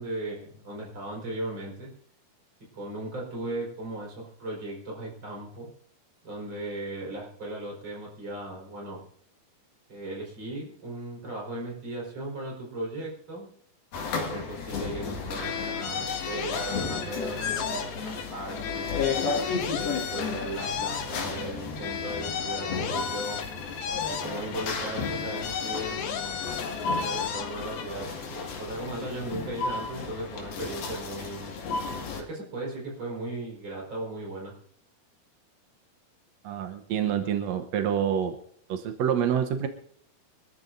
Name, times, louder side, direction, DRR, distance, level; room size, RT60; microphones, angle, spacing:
voice 1, 0.0-1.9 2.7-5.7 6.2-9.0 9.9-13.5 14.1-18.9 19.7-23.4 24.1-26.5 27.0-31.5 32.2-34.5, right 1 dB, 30° right, -2 dB, 5.2 m, -37 dB
sound 1, 13.9-32.2, left 4 dB, 70° left, 3.7 m, -34 dB
sound 2, 15.4-18.3 18.6-21.5 21.8-24.7 25.0-27.9, left 8 dB, 90° left, 3.2 m, -34 dB
voice 2, 36.4-38.3 38.7-39.7, right 9 dB, 80° right, 6 dB, 1.5 m, -27 dB
24.0 x 14.0 x 2.7 m, 0.62 s
omnidirectional pair, 4.5 m